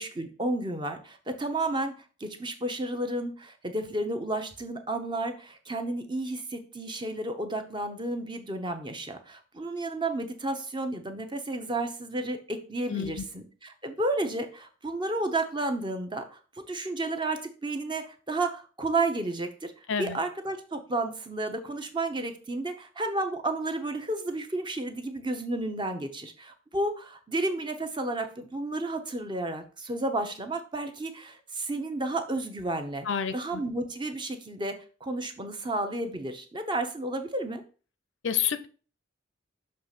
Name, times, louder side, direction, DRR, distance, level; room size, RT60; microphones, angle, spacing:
voice 1, 0.0-1.9 2.2-19.7 20.0-33.1 33.3-34.7 35.0-37.6, right 2 dB, 25° right, 6 dB, 0.8 m, -32 dB
voice 2, 12.9-13.2 19.9-20.2 33.1-33.6 38.2-38.7, left 7 dB, 80° left, 12 dB, 0.6 m, -29 dB
6.6 x 3.2 x 5.8 m, 0.38 s
head